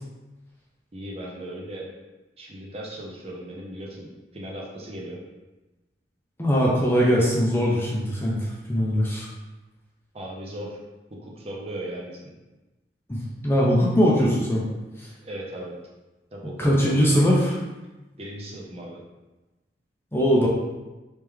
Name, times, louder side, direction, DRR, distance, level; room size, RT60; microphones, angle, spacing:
voice 1, 0.9-1.9 2.4-5.2 10.1-10.8 11.1-12.3 15.2-15.8 16.3-17.1 18.2-19.0, right 1 dB, 35° right, -2 dB, 0.6 m, -37 dB
voice 2, 6.4-8.4 8.7-9.3 13.1-14.6 16.6-17.5 20.1-20.5, equal, 15° left, -4 dB, 0.6 m, -21 dB
3.3 x 3.1 x 3.5 m, 1.1 s
head